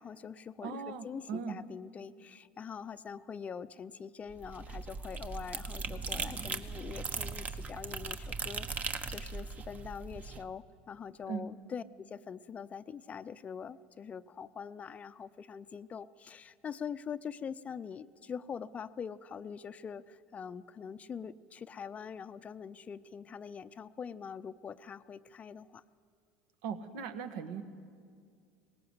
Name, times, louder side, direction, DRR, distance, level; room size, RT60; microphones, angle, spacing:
voice 1, 0.0-25.8, left 7 dB, 30° left, 14 dB, 0.6 m, -44 dB
voice 2, 0.6-1.6 11.3-11.5 26.6-27.6, right 6 dB, 70° right, 10 dB, 1.4 m, -39 dB
sound 1, 4.3-10.4, right 4 dB, 35° right, 1.2 m, -39 dB
19.0 x 18.0 x 8.0 m, 2.2 s
hypercardioid pair, 90°, 4 cm